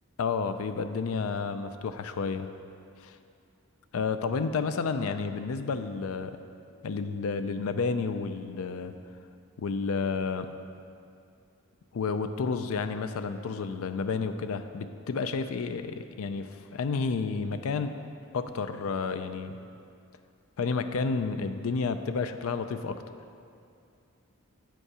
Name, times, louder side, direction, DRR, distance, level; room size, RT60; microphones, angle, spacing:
voice 1, 0.2-2.5 3.0-3.2 3.9-6.4 6.8-8.9 9.6-10.5 11.9-18.0 18.3-19.6 20.6-23.0, left 4 dB, 75° left, 9 dB, 0.4 m, -31 dB
7.6 x 5.3 x 4.8 m, 2.5 s
head